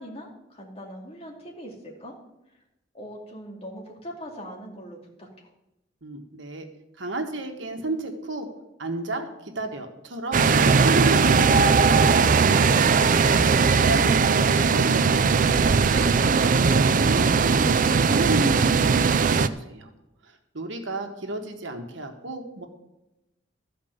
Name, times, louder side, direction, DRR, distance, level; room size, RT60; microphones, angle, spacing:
voice 1, 0.0-2.2 2.9-5.5, equal, 35° left, 0 dB, 2.4 m, -41 dB
voice 2, 6.0-6.6 7.0-8.5 8.8-13.1 13.8-16.5 16.8-19.9 20.5-22.7, right 2 dB, 75° right, 4 dB, 1.6 m, -32 dB
sound 1, 10.3-19.5, right 5 dB, 45° right, 0.5 m, -19 dB
13.5 x 5.2 x 8.0 m, 0.92 s
head